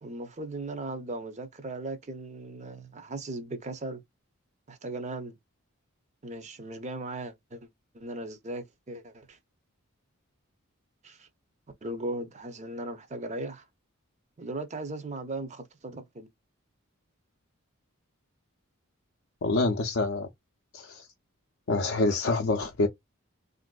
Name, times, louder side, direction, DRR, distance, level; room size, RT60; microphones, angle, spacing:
voice 1, 0.0-4.0 4.7-5.4 6.2-7.7 7.9-9.4 11.0-11.3 11.8-13.6 14.4-16.3, right 2 dB, 30° right, 0.6 m, -37 dB
voice 2, 19.4-20.3 20.7-21.1 21.7-22.9, left 3 dB, 55° left, 0.5 m, -26 dB
3.4 x 2.6 x 2.2 m
head